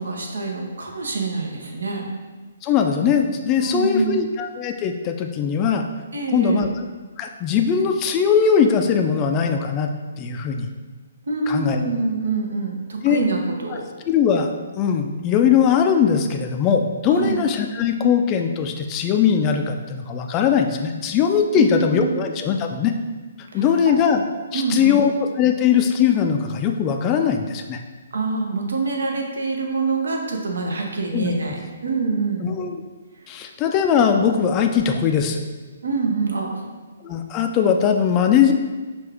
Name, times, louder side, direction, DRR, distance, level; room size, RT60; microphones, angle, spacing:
voice 1, 0.0-2.1 3.6-4.2 6.1-6.6 11.3-13.9 17.1-17.4 21.5-22.1 23.5-24.0 24.5-25.0 28.1-32.5 35.8-36.6, right 4 dB, 70° right, 1 dB, 0.8 m, -25 dB
voice 2, 2.6-5.8 6.3-6.7 7.2-9.9 10.2-10.7 11.5-11.8 13.0-13.2 14.1-14.5 14.8-22.9 23.5-24.2 24.5-27.8 31.1-31.3 32.4-32.8 33.3-35.4 37.0-38.5, left 7 dB, 25° left, 5 dB, 0.4 m, -20 dB
5.5 x 2.5 x 3.4 m, 1.3 s
figure-of-eight pair, 130°, 0 cm